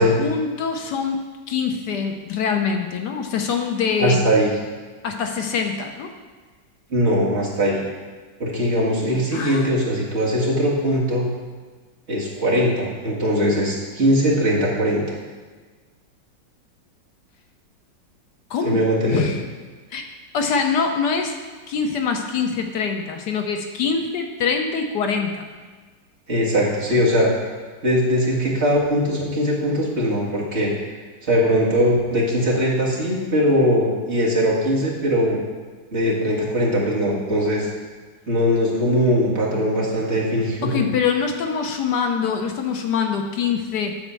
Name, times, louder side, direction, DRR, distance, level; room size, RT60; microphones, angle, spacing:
voice 1, 0.0-4.2 5.0-6.1 9.3-9.7 18.5-19.4 19.9-20.0 20.3-21.4 21.7-25.5 40.6-43.9, left 5 dB, 70° left, 4 dB, 1.2 m, -24 dB
voice 2, 4.0-4.5 6.9-7.8 8.4-11.3 12.1-15.0 18.6-19.2 26.3-27.3 27.8-30.7 31.2-35.4 35.9-37.7 38.3-40.8, equal, 40° right, -5 dB, 2.0 m, -20 dB
10.5 x 4.2 x 6.8 m, 1.4 s
omnidirectional pair, 1.9 m